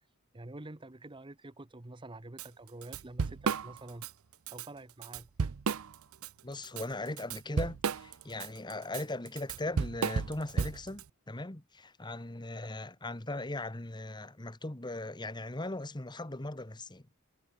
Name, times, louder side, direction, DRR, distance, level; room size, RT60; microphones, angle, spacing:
voice 1, 0.3-4.1 4.5-5.5, right 2 dB, 25° right, 1.0 m, -47 dB
Drum kit / Drum, 2.4-2.5 2.8-4.1 4.5-4.7 5.0-6.3 6.6-11.0, right 5 dB, 75° right, 0.6 m, -33 dB
voice 2, 6.4-17.0, left 2 dB, 20° left, 1.3 m, -39 dB
head